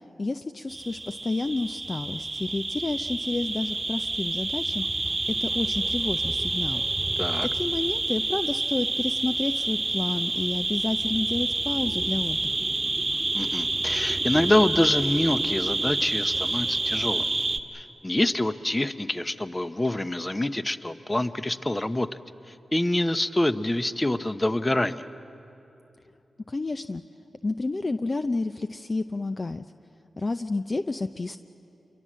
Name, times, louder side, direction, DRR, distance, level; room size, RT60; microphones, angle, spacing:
voice 1, 0.2-5.1 5.4-6.8 7.4-12.6 26.5-27.0 27.4-29.6 30.2-31.4, left 3 dB, 40° left, 9 dB, 0.6 m, -30 dB
sound 1, 0.7-17.6, right 2 dB, 35° right, 1.2 m, -28 dB
voice 2, 13.3-17.3 17.7-22.1 22.7-25.0, left 1 dB, 20° left, 12 dB, 0.9 m, -26 dB
27.5 x 23.0 x 7.5 m, 2.8 s
cardioid pair, 55°, 0 cm